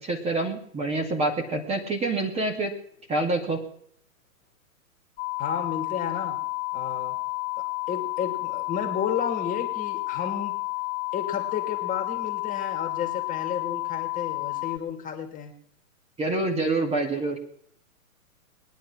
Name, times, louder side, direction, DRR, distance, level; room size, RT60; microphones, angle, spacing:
voice 1, 0.0-2.7 3.1-3.6 16.2-17.4, right 2 dB, 15° right, 2 dB, 2.3 m, -26 dB
sound 1, 5.2-14.8, left 28 dB, 40° left, 1.1 m, -31 dB
voice 2, 5.4-6.4 6.7-7.2 7.9-10.6 11.1-15.5, left 7 dB, 20° left, 3 dB, 2.5 m, -32 dB
20.5 x 10.5 x 6.2 m, 0.65 s
hypercardioid pair, 130°, 42 cm